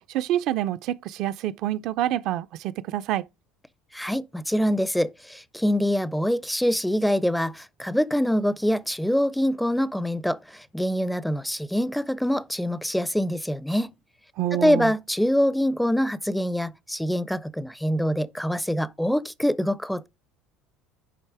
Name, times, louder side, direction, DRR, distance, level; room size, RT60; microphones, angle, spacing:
voice 1, 0.1-3.2 14.4-14.9, right 13 dB, 60° right, 0.4 m, -27 dB
voice 2, 3.9-13.9 14.5-20.1, equal, ahead, 0.4 m, -25 dB
10.0 x 3.4 x 4.7 m
cardioid pair, 130°, 0 cm